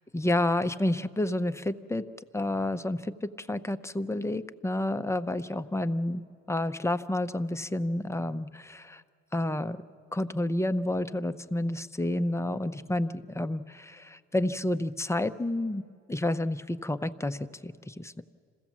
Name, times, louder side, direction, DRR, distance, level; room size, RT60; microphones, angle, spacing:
voice 1, 0.1-2.0 2.3-6.2 6.5-9.0 9.3-9.8 10.1-15.8 16.1-18.2, left 1 dB, 10° left, 9 dB, 0.6 m, -30 dB
26.5 x 16.0 x 7.3 m, 2.2 s
cardioid pair, 90°, 30 cm